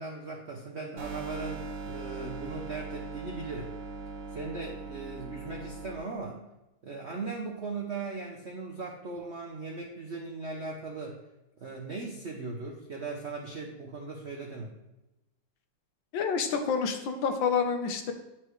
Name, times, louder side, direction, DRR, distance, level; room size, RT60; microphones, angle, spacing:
voice 1, 0.0-3.7 4.3-6.4 6.8-11.2 11.6-14.7, right 3 dB, 65° right, 0 dB, 0.6 m, -38 dB
sound 1, 1.0-6.0, right 3 dB, 80° right, 1.6 m, -40 dB
voice 2, 16.1-18.1, left 6 dB, 75° left, 6 dB, 1.5 m, -28 dB
9.6 x 4.4 x 3.1 m, 0.95 s
omnidirectional pair, 2.2 m